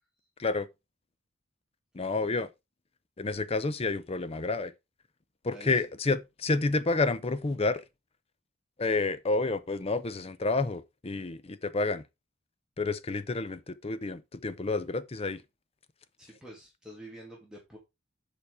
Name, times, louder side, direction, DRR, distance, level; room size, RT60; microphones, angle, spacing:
voice 1, 1.9-2.5 3.2-4.7 5.4-7.8 8.8-12.0 12.8-15.4, left 3 dB, 30° left, 0.5 m, -29 dB
voice 2, 5.5-5.9 16.2-17.8, right 1 dB, 5° right, 2.0 m, -47 dB
7.1 x 5.0 x 4.8 m
head